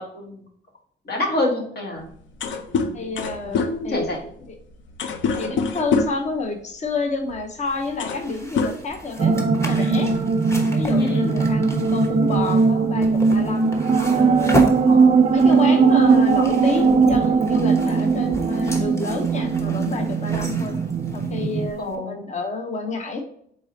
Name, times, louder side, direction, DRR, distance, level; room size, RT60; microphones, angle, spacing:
voice 1, 1.1-2.1 2.7-3.1 3.5-4.2 11.0-11.3 14.8-15.2 21.8-22.2, left 1 dB, 55° left, 1 dB, 1.5 m, -27 dB
sound 1, 2.0-2.1 2.3-6.3 7.3-7.4 7.8-8.3 8.5-9.4, left 5 dB, 75° left, 0.6 m, -25 dB
voice 2, 2.9-4.6 5.3-10.1 10.7-14.6 15.3-20.8 21.1-23.2, left 3 dB, 35° left, 5 dB, 0.9 m, -29 dB
sound 2, 7.7-22.0, left 1 dB, 15° left, 0.9 m, -34 dB
sound 3, 9.2-21.7, right 4 dB, 30° right, 0.4 m, -19 dB
4.6 x 4.0 x 2.8 m, 0.66 s
cardioid pair, 90°, 20 cm